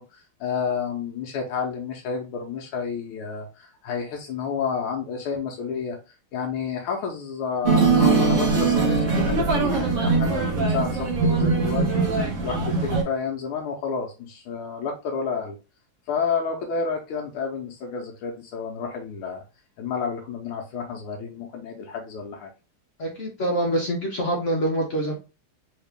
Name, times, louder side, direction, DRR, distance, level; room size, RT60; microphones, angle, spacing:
voice 1, 0.0-6.0 6.3-15.6 16.1-19.4 19.8-22.5, left 5 dB, 85° left, 1 dB, 1.6 m, -30 dB
sound 1, 7.6-13.0, right 4 dB, 50° right, 1.1 m, -21 dB
voice 2, 23.0-25.1, right 1 dB, 55° left, -1 dB, 0.9 m, -25 dB
3.9 x 2.8 x 3.3 m, 0.29 s
omnidirectional pair, 2.3 m